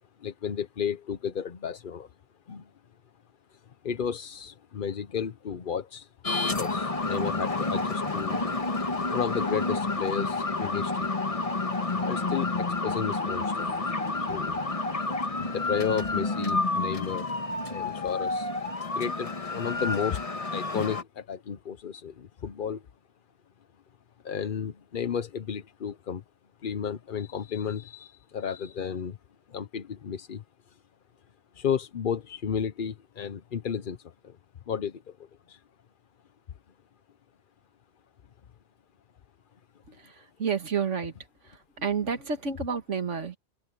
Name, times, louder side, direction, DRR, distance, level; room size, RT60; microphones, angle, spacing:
voice 1, 0.2-2.1 2.5-2.6 3.8-6.1 6.6-8.4 9.1-11.1 12.0-13.7 14.2-14.6 15.4-17.3 17.7-18.5 19.0-20.2 20.5-22.8 24.2-26.2 26.6-29.2 29.5-30.4 31.6-34.0 34.2-34.3 34.7-34.9 35.5-35.6, left 7 dB, 50° left, 0.9 m, -32 dB
sound 1, 6.2-21.0, left 3 dB, 30° left, 1.4 m, -29 dB
sound 2, 6.9-13.5, equal, 10° left, 5.4 m, -57 dB
voice 2, 39.9-41.2 41.4-43.4, right 6 dB, 70° right, 2.1 m, -30 dB
open air
omnidirectional pair, 1.3 m